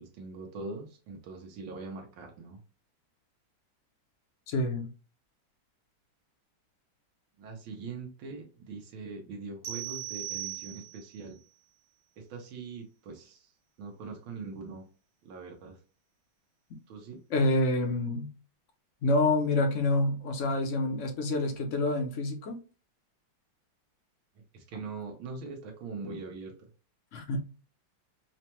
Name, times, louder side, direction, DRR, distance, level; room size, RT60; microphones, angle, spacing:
voice 1, 0.0-2.6 7.4-11.4 12.2-13.5 13.8-14.9 15.2-15.8 16.9-17.2 24.5-26.5, right 4 dB, 85° right, 1.6 m, -42 dB
voice 2, 4.5-4.9 17.3-18.3 19.0-22.6 27.1-27.4, left 2 dB, 55° left, 0.8 m, -27 dB
sound 1, 9.6-11.2, right 14 dB, 65° right, 1.2 m, -38 dB
4.9 x 2.2 x 2.9 m
omnidirectional pair, 2.2 m